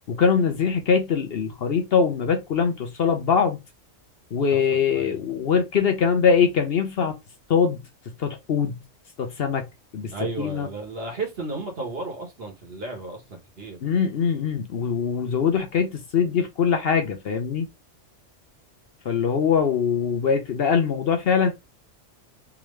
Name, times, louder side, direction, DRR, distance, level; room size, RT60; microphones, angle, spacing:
voice 1, 0.1-3.6 4.3-7.1 7.5-7.8 8.2-8.8 9.2-9.7 9.9-10.7 13.8-17.7 19.0-21.5, left 6 dB, 60° left, 0.8 m, -22 dB
voice 2, 4.5-5.2 10.1-13.8, right 3 dB, 50° right, 1.5 m, -34 dB
3.6 x 3.1 x 3.1 m
omnidirectional pair, 1.3 m